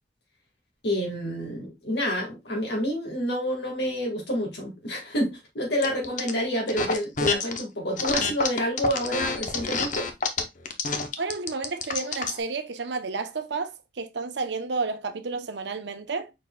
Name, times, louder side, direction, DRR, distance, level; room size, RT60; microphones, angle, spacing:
voice 1, 0.8-10.1, equal, 65° left, 1.8 m, -28 dB
sound 1, 5.8-6.3 6.7-7.6 8.0-12.4, left 4 dB, 45° left, 0.8 m, -28 dB
voice 2, 11.2-16.3, right 4 dB, 70° right, 0.7 m, -31 dB
5.3 x 4.4 x 2.2 m
head